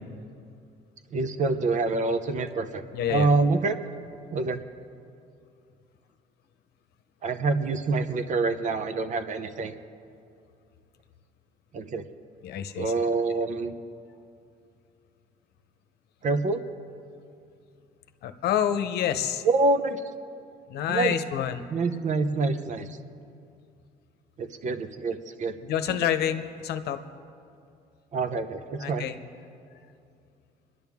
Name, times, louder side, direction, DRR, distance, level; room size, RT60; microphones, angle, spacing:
voice 1, 1.1-2.8 3.1-3.7 4.3-4.6 7.2-9.7 11.7-12.0 12.8-13.7 16.2-16.6 19.4-20.0 20.9-21.1 21.7-23.0 24.4-25.5 25.9-26.0 28.1-29.1, right 3 dB, 45° right, 10 dB, 0.8 m, -26 dB
voice 2, 2.9-3.3 12.4-12.9 18.2-19.4 20.7-21.7 25.6-27.0 28.8-29.2, left 10 dB, 70° left, 9 dB, 0.8 m, -28 dB
24.5 x 11.0 x 3.6 m, 2.5 s
cardioid pair, 110°, 17 cm